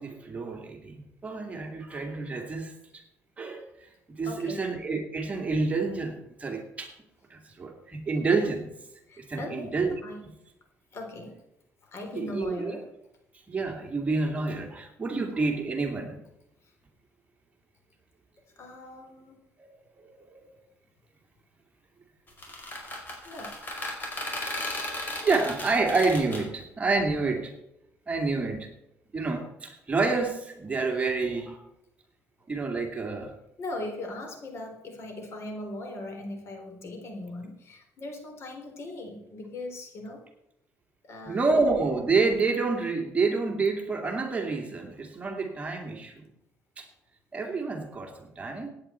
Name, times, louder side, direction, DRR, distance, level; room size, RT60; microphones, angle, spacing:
voice 1, 0.0-3.0 3.4-3.7 4.1-6.9 7.3-8.7 9.2-10.0 12.1-12.7 13.5-16.2 19.6-19.7 20.0-20.4 24.2-24.5 25.0-27.5 28.1-28.7 29.1-31.6 32.5-33.3 41.3-46.3 46.8-46.9 47.3-48.7, right 3 dB, 25° right, 2 dB, 2.5 m, -28 dB
voice 2, 4.2-4.7 9.1-9.7 10.0-10.2 10.9-11.4 11.8-12.8 15.1-15.3 16.6-16.7 18.6-19.4 23.2-23.6 33.6-40.2 41.0-41.8, left 2 dB, 55° left, 3 dB, 3.8 m, -39 dB
sound 1, 22.3-26.4, left 2 dB, 35° left, 5.1 m, -35 dB
16.5 x 9.6 x 4.4 m, 0.84 s
cardioid pair, 115°, 5 cm